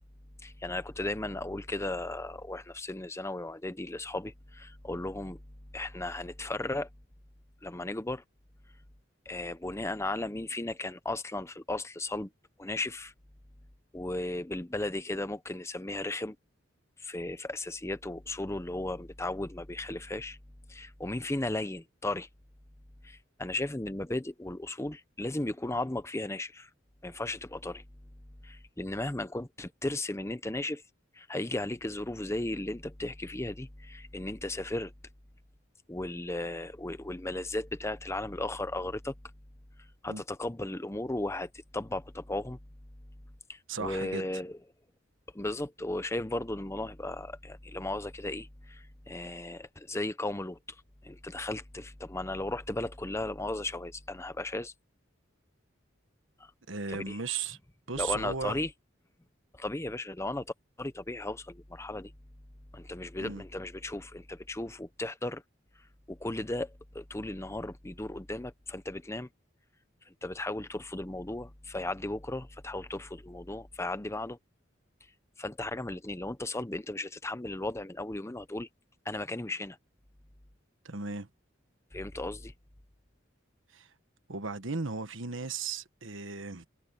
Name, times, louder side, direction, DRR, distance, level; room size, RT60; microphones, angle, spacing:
voice 1, 0.4-5.4 5.7-6.9 7.6-8.2 9.3-12.3 12.6-13.1 13.9-16.4 17.0-20.4 20.7-22.3 23.0-26.7 27.0-27.8 28.4-30.8 31.1-34.9 35.9-39.1 40.0-42.6 43.5-44.6 45.3-50.8 51.0-54.7 56.4-56.5 56.9-57.2 58.0-58.7 59.5-62.1 62.7-65.4 66.1-69.3 70.1-74.4 75.4-78.7 79.0-79.8 81.9-82.5, left 2 dB, 15° left, 0.8 m, -35 dB
voice 2, 43.7-44.2 56.7-57.6 57.9-58.6 63.2-63.4 80.8-81.3 83.7-83.9 84.3-86.7, right 4 dB, 75° right, 1.4 m, -36 dB
head